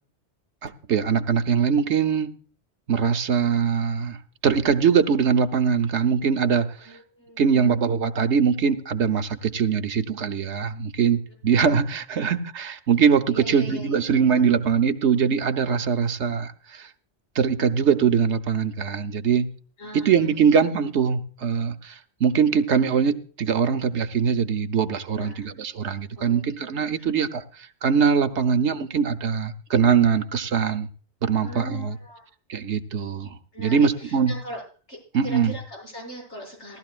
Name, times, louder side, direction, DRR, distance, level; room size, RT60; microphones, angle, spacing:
voice 1, 0.6-2.3 2.9-4.2 4.4-7.0 7.4-16.9 17.3-19.5 19.9-30.9 31.2-32.0 32.5-34.3 35.1-35.5, right 6 dB, 75° right, 1.2 m, -22 dB
voice 2, 6.8-7.8 9.7-9.9 13.3-14.5 16.1-16.3 19.8-20.6 22.5-22.6 25.1-25.5 26.1-26.4 27.0-27.1 31.4-32.3 33.5-34.6 34.9-36.8, equal, 80° left, 7.9 m, -40 dB
18.0 x 13.0 x 2.4 m
omnidirectional pair, 1.2 m